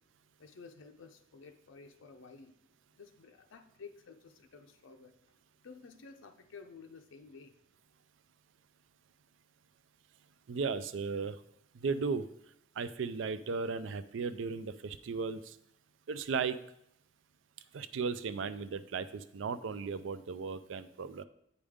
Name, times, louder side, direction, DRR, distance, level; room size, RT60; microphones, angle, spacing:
voice 1, 0.4-2.5 2.9-5.2 5.6-7.6, left 4 dB, 80° left, 5 dB, 0.5 m, -53 dB
voice 2, 10.5-11.3 11.8-12.3 12.8-15.4 16.1-16.6 17.7-21.2, right 5 dB, 75° right, 13 dB, 0.4 m, -35 dB
8.2 x 5.0 x 3.6 m, 0.73 s
head